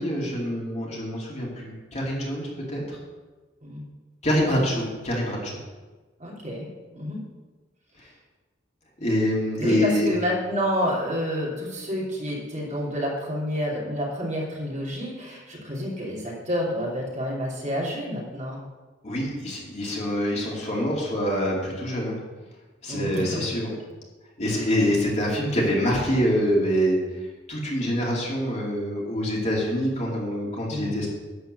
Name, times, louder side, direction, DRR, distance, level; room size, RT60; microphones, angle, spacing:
voice 1, 0.0-3.0 4.2-5.6 9.0-10.1 19.0-22.2 22.8-23.7 24.4-27.0 27.5-31.1, equal, 40° left, -3 dB, 2.7 m, -25 dB
voice 2, 6.2-6.7 6.9-7.2 9.6-18.6 22.9-23.4 24.5-24.7 30.7-30.9, equal, 40° right, -4 dB, 3.0 m, -29 dB
11.5 x 4.4 x 8.0 m, 1.3 s
head